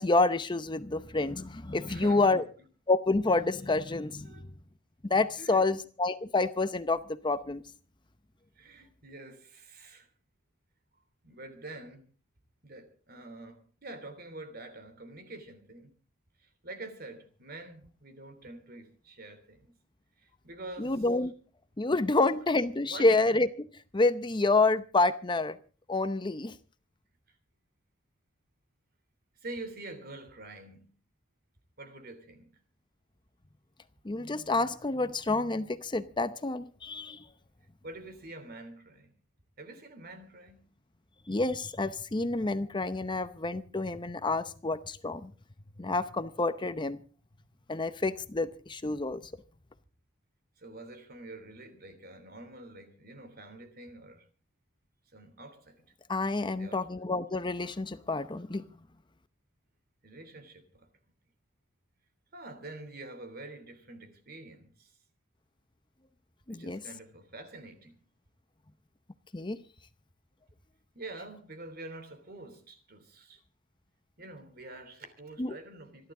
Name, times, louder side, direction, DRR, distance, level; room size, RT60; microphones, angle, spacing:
voice 1, 0.0-2.4 2.9-4.4 5.0-7.6 20.8-21.3 21.8-25.6 25.9-26.6 34.0-37.2 41.3-45.3 45.8-47.0 47.7-49.2 56.1-58.6 66.5-66.8 69.3-69.6 75.4-75.5, left 3 dB, 25° left, 0.7 m, -28 dB
voice 2, 1.8-2.4 4.2-4.5 5.4-5.7 8.5-10.1 11.2-12.0 12.6-15.9 16.4-19.8 20.2-21.0 21.8-21.9 22.4-22.5 22.8-23.1 27.3-27.4 29.4-30.9 31.8-32.6 37.8-39.1 39.6-40.7 50.6-54.2 55.1-55.9 56.4-56.9 60.0-60.9 62.3-64.9 66.5-68.0 70.9-73.4 74.2-76.1, right 2 dB, 50° right, 3.1 m, -46 dB
27.0 x 11.5 x 3.7 m
head